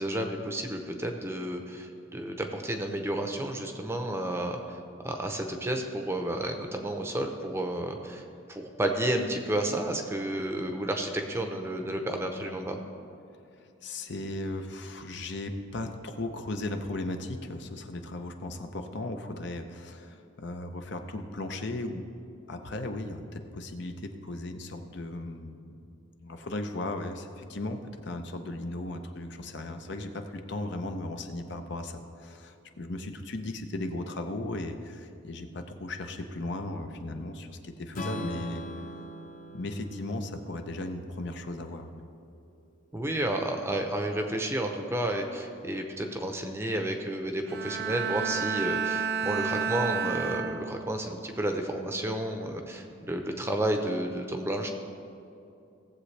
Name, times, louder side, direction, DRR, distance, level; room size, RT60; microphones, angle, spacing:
voice 1, 0.0-12.8 42.9-54.7, right 1 dB, 10° right, 4 dB, 0.7 m, -31 dB
voice 2, 13.8-22.1 22.5-25.7 26.2-38.6 39.5-42.0, left 2 dB, 60° left, 6 dB, 0.7 m, -36 dB
Strum, 37.9-42.1, left 1 dB, 40° left, 1.0 m, -41 dB
Bowed string instrument, 47.5-51.0 51.5-51.9, right 6 dB, 50° right, 0.6 m, -31 dB
17.0 x 7.7 x 3.3 m, 2.6 s
head